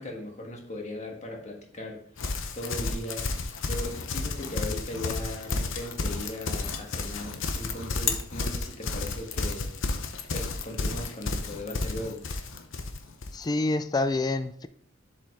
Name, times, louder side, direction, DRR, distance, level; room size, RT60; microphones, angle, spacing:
voice 1, 0.0-2.0 2.5-3.3 3.7-9.7 10.3-12.2, left 1 dB, 35° left, 1 dB, 1.5 m, -38 dB
Livestock farm animals working animals, 2.2-13.4, left 3 dB, 65° left, 0.8 m, -31 dB
voice 2, 13.3-14.7, left 2 dB, 20° left, 12 dB, 0.4 m, -27 dB
7.2 x 5.3 x 3.6 m, 0.66 s
head